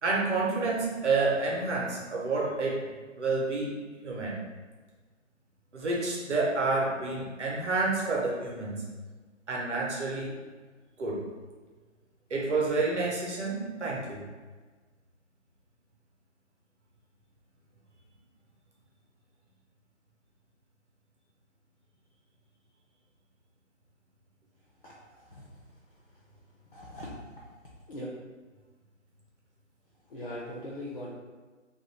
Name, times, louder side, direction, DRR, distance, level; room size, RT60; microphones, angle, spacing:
voice 1, 0.0-2.9 3.2-4.4 5.7-8.8 9.5-10.4 11.0-11.3 12.3-14.3, right 3 dB, 60° right, -2 dB, 0.8 m, -29 dB
voice 2, 26.7-27.4 27.9-28.1 30.1-31.1, left 1 dB, 45° left, -6 dB, 0.4 m, -40 dB
2.5 x 2.3 x 3.1 m, 1.4 s
figure-of-eight pair, 170°, 39 cm